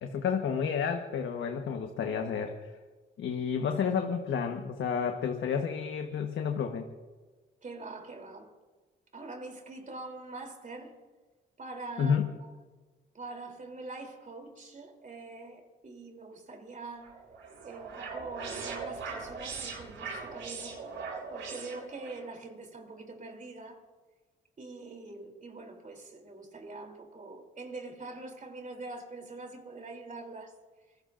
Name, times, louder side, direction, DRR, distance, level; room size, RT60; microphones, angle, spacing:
voice 1, 0.0-2.7 3.2-6.8 12.0-12.3, left 6 dB, 75° left, 1.3 m, -30 dB
voice 2, 7.6-8.5 9.1-11.0 11.6-12.5 13.1-17.2 17.6-20.8 21.3-23.8 24.6-30.5, right 3 dB, 40° right, 3.3 m, -44 dB
sound 1, 17.0-22.2, right 4 dB, 85° right, 7.1 m, -40 dB
25.5 x 20.0 x 2.6 m
cardioid pair, 85°, 20 cm